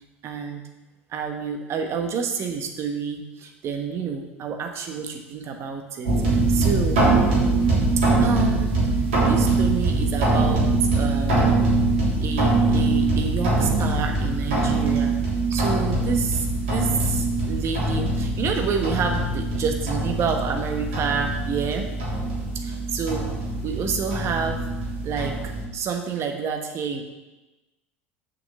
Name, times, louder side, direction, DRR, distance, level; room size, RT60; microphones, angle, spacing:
voice 1, 0.2-0.6 1.1-7.1 8.0-8.8 9.2-11.6 12.2-15.2 15.5-21.9 22.5-23.3 23.6-24.6 25.0-27.0, right 6 dB, 40° right, 4 dB, 1.4 m, -28 dB
sound 1, 6.0-25.6, right 2 dB, 65° right, 3.3 m, -23 dB
7.1 x 6.1 x 6.4 m, 1.1 s
figure-of-eight pair, 70°, 7 cm